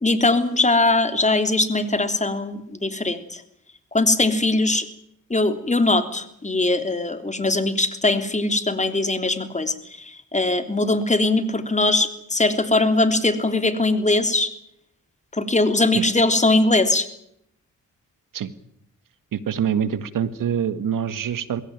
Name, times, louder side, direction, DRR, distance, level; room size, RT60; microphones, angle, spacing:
voice 1, 0.0-3.4 3.9-4.9 5.3-14.5 15.3-17.1, left 2 dB, 20° left, 9 dB, 3.3 m, -21 dB
voice 2, 19.3-21.6, right 8 dB, 75° right, 14 dB, 1.8 m, -25 dB
21.5 x 17.0 x 9.2 m, 0.75 s
cardioid pair, 70°, 33 cm